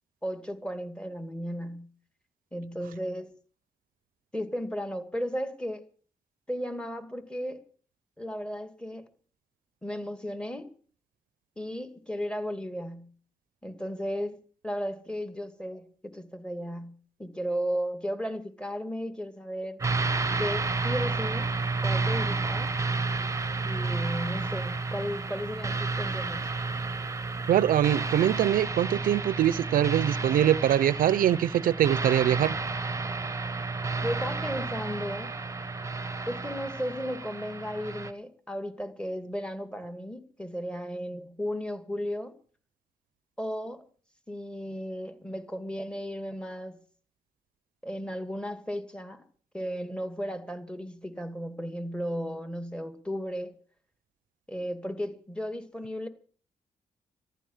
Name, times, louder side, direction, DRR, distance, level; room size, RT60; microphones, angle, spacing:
voice 1, 0.2-1.9 2.5-3.3 4.3-5.8 6.5-7.6 8.2-9.0 9.8-10.7 11.6-13.1 13.6-19.8 20.4-21.5 21.8-22.7 23.7-26.5 34.0-35.3 36.3-42.3 43.4-43.8 44.3-46.8 47.8-49.2 49.5-53.6 54.5-56.1, equal, 5° left, 2.4 m, -35 dB
sound 1, 19.8-38.1, right 3 dB, 20° right, 1.1 m, -31 dB
voice 2, 27.5-32.5, right 11 dB, 85° right, 0.6 m, -23 dB
14.5 x 12.0 x 7.3 m
cardioid pair, 90°, 14 cm